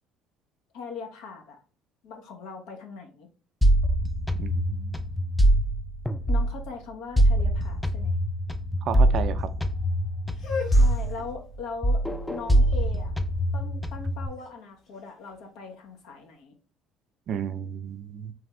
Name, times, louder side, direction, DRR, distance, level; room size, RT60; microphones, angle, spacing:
voice 1, 0.7-1.6 2.0-3.3 6.3-8.1 10.8-12.0 12.3-13.1 13.5-16.5, left 5 dB, 75° left, 1.1 m, -40 dB
sound 1, 3.6-6.7 7.2-11.6 11.8-14.3, right 1 dB, 5° left, 0.4 m, -23 dB
voice 2, 4.4-5.1 8.8-9.5 17.3-18.3, right 8 dB, 55° right, 0.5 m, -33 dB
sound 2, 10.3-16.2, left 5 dB, 60° left, 1.8 m, -40 dB
3.4 x 3.4 x 3.2 m
supercardioid pair, 80°, 0 cm